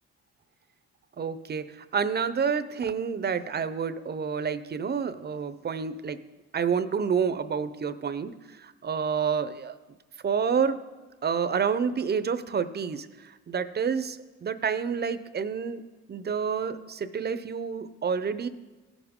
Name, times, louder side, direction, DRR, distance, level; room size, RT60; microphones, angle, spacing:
voice 1, 1.2-6.2 6.5-9.7 10.2-10.8 11.2-15.8 16.1-18.5, right 6 dB, 35° right, 12 dB, 0.6 m, -29 dB
17.0 x 7.1 x 3.7 m, 1.2 s
cardioid pair, 90°, 30 cm